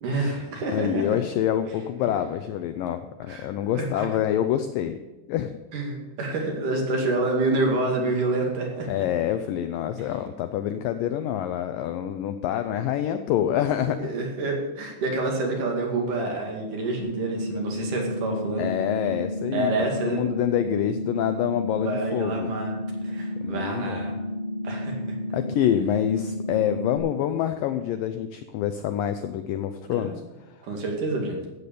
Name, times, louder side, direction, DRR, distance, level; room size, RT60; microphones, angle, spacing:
voice 1, 0.0-1.2 2.0-2.1 3.3-3.5 3.7-4.1 5.7-8.9 10.0-10.1 14.0-18.7 19.5-20.2 21.8-22.8 23.0-24.2 24.6-25.2 29.9-30.2 30.6-31.4, right 2 dB, 55° right, 1 dB, 3.5 m, -28 dB
voice 2, 0.7-5.0 5.3-5.5 8.9-14.1 18.6-19.7 20.1-22.5 23.4-24.1 25.3-30.2 30.5-30.6, left 10 dB, 90° left, 9 dB, 1.9 m, -26 dB
sound 1, 17.0-27.0, left 1 dB, 35° left, 3.9 m, -32 dB
14.0 x 8.5 x 6.8 m, 1.1 s
omnidirectional pair, 4.7 m